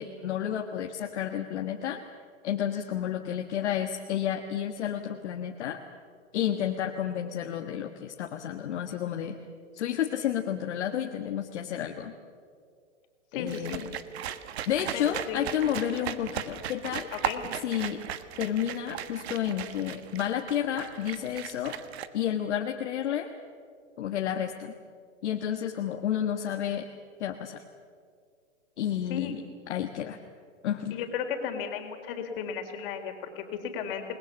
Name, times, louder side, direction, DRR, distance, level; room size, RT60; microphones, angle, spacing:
voice 1, 0.0-2.0 2.4-5.8 6.3-9.4 9.7-12.1 13.3-13.9 14.7-17.1 17.6-18.0 18.4-21.8 22.1-23.3 24.0-24.7 25.2-26.9 27.2-27.6 28.8-29.4 29.7-30.2 30.6-31.0, left 10 dB, 65° left, 3 dB, 1.7 m, -31 dB
voice 2, 13.3-13.8 14.9-15.5 15.7-15.8 17.1-17.4 29.1-29.3 30.9-34.0, left 7 dB, 45° left, 5 dB, 3.7 m, -35 dB
sound 1, 13.5-22.1, right 10 dB, 60° right, 1.5 m, -37 dB
28.5 x 20.5 x 7.2 m, 2.1 s
hypercardioid pair, 130°, 37 cm